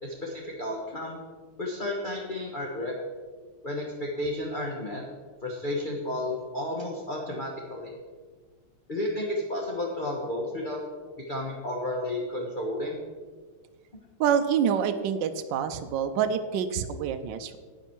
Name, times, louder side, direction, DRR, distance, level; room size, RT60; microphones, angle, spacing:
voice 1, 0.0-1.2 1.6-2.9 3.6-5.0 5.4-7.9 8.9-10.8 11.3-13.0, left 1 dB, 30° left, -1 dB, 1.0 m, -32 dB
voice 2, 14.2-17.6, right 8 dB, 70° right, 8 dB, 1.1 m, -27 dB
9.9 x 9.2 x 4.5 m, 1.5 s
omnidirectional pair, 2.4 m